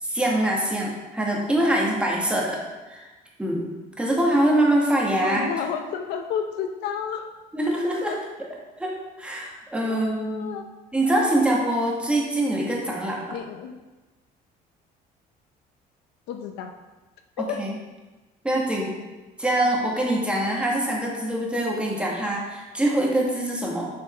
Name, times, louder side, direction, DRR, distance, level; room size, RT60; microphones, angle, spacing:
voice 1, 0.0-2.6 2.9-3.1 3.4-3.7 4.0-5.5 7.5-8.2 8.8-8.9 9.2-10.5 10.9-13.4 17.4-17.7 18.4-18.9 19.4-23.9, right 1 dB, 5° right, -3 dB, 1.8 m, -24 dB
voice 2, 5.2-7.2 8.1-8.2 9.8-10.6 13.3-13.7 16.3-16.7 17.4-17.6, left 7 dB, 90° left, 5 dB, 0.8 m, -31 dB
6.8 x 5.3 x 4.4 m, 1.2 s
cardioid pair, 110°, 17 cm